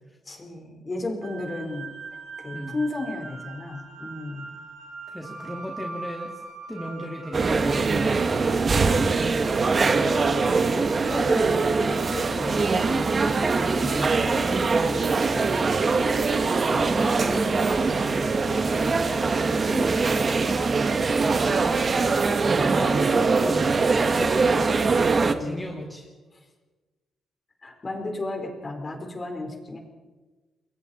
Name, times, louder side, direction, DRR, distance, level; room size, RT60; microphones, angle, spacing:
voice 1, 0.3-1.9 2.4-4.5 9.7-10.4 10.7-15.6 18.7-19.0 24.1-24.7 25.2-25.6 26.3-26.4 27.6-29.8, left 2 dB, 25° left, 2 dB, 4.3 m, -34 dB
sound 1, 1.2-10.4, right 4 dB, 75° right, 4.8 m, -41 dB
voice 2, 5.1-6.4 6.7-8.0 16.3-18.4 18.9-20.7 21.4-21.9 22.6-24.4 25.4-26.1, equal, 5° left, -1 dB, 2.7 m, -35 dB
sound 2, 7.3-25.3, right 4 dB, 35° right, 1.5 m, -22 dB
29.5 x 22.0 x 4.3 m, 1.3 s
cardioid pair, 115°, 0 cm